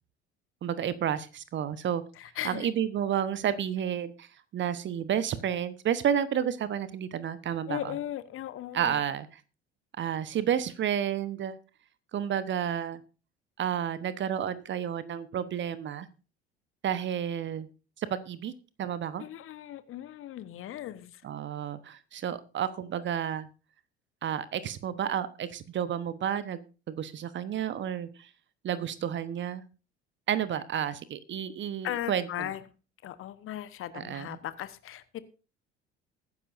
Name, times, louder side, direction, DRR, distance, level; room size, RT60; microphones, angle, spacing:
voice 1, 0.6-2.0 2.4-4.3 4.5-7.8 8.7-9.3 10.0-11.6 12.1-13.0 13.6-16.1 16.8-17.7 18.0-18.5 18.8-19.2 21.2-23.5 24.2-26.6 26.9-28.3 28.6-29.6 30.3-32.5 33.9-34.4, right 9 dB, 35° right, 15 dB, 1.1 m, -31 dB
voice 2, 2.1-2.7 7.7-9.0 19.2-21.2 31.8-32.7 33.0-35.2, left 12 dB, 40° left, 14 dB, 1.1 m, -37 dB
20.5 x 10.0 x 2.6 m, 0.34 s
figure-of-eight pair, 60°, 33 cm